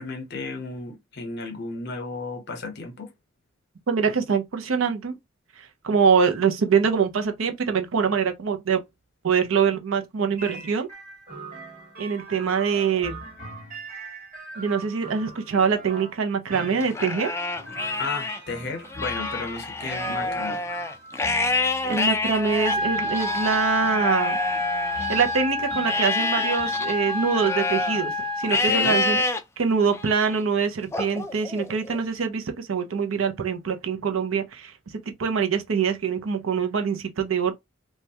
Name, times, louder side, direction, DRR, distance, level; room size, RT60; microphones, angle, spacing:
voice 1, 0.0-3.1 18.0-20.6 28.5-29.0, left 3 dB, 55° left, 0.8 m, -33 dB
voice 2, 3.9-5.2 5.6-8.8 9.2-10.9 12.0-13.1 14.6-17.3 21.8-24.4 25.1-29.2 29.6-34.7 35.2-37.5, right 6 dB, 85° right, 0.6 m, -24 dB
sound 1, 10.4-29.1, right 2 dB, 45° right, 1.3 m, -42 dB
Livestock farm animals working animals, 16.8-18.4 18.8-25.4 25.9-28.0 28.5-29.4 29.9-30.4 30.9-32.0, left 3 dB, 15° left, 0.3 m, -28 dB
sound 2, 22.6-28.6, left 2 dB, 25° right, 0.6 m, -28 dB
3.1 x 2.2 x 2.7 m
head